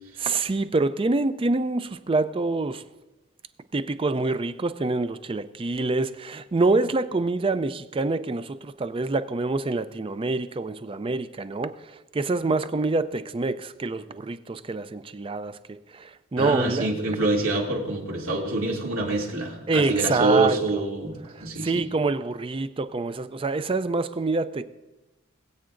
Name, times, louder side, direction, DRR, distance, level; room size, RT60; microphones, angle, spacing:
voice 1, 0.2-2.8 3.7-16.9 19.7-20.6 21.3-24.6, right 3 dB, 25° right, 12 dB, 0.4 m, -26 dB
voice 2, 16.4-21.8, right 2 dB, 85° right, -2 dB, 2.6 m, -26 dB
21.5 x 8.3 x 2.6 m, 1.0 s
head